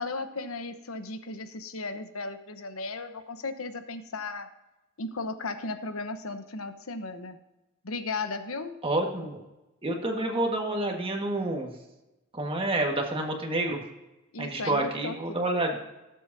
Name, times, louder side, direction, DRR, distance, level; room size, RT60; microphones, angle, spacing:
voice 1, 0.0-4.5 5.0-7.4 7.8-8.7 14.3-15.4, left 3 dB, 85° left, 9 dB, 1.0 m, -35 dB
voice 2, 8.8-9.4 9.8-11.7 12.3-13.8 14.4-15.8, right 2 dB, 25° right, 2 dB, 1.6 m, -28 dB
18.5 x 7.7 x 2.7 m, 1.0 s
head